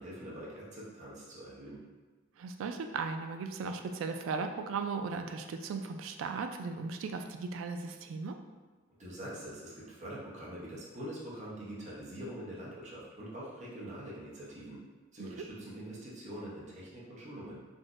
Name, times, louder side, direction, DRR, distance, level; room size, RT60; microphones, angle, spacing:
voice 1, 0.0-1.8 9.0-14.8 15.1-17.6, right 1 dB, 35° right, -6 dB, 0.8 m, -44 dB
voice 2, 2.4-8.4 15.2-15.5, right 4 dB, 85° right, 6 dB, 0.3 m, -37 dB
3.7 x 2.6 x 2.4 m, 1.3 s
head